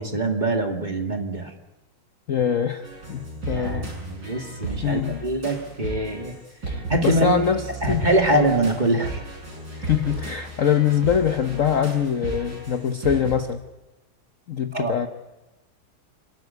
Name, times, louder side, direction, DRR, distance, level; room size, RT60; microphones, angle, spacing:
voice 1, 0.0-1.5 3.5-6.3 6.9-7.4 7.8-9.2 14.7-14.9, right 2 dB, 20° right, 4 dB, 2.1 m, -24 dB
voice 2, 2.3-3.9 4.8-5.2 6.7-7.6 7.9-8.0 8.3-8.5 9.7-13.6 14.5-15.1, left 8 dB, 50° left, 8 dB, 1.0 m, -23 dB
sound 1, 2.8-13.3, right 3 dB, 60° right, 7.1 m, -34 dB
29.0 x 13.0 x 9.4 m, 1.1 s
omnidirectional pair, 2.2 m